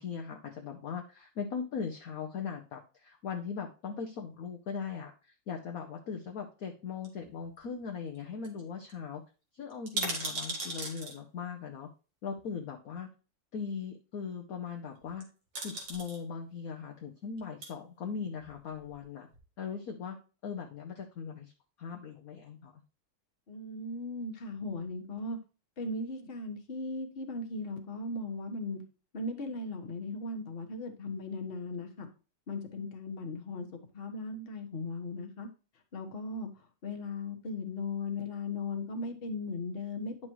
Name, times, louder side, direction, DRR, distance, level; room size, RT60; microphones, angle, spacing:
voice 1, 0.0-9.2 9.5-11.9 12.2-13.1 13.5-15.3 15.6-19.3 19.6-20.2 20.4-21.5 21.8-22.7, left 6 dB, 55° left, 2 dB, 1.2 m, -39 dB
sound 1, 7.0-7.8 8.1-8.2 8.4-8.6 8.9-9.0 9.7-11.2 12.3-12.4 15.0-15.2 15.5-16.2 17.3-17.7 18.4-19.1 19.3-19.4, right 2 dB, 70° right, 2.5 m, -37 dB
voice 2, 23.5-25.4 25.8-28.8 29.1-32.1 32.5-33.7 33.9-35.5 35.9-36.5 36.8-40.2, left 2 dB, 35° left, 3 dB, 1.3 m, -37 dB
9.5 x 6.1 x 3.1 m, 0.34 s
omnidirectional pair, 2.0 m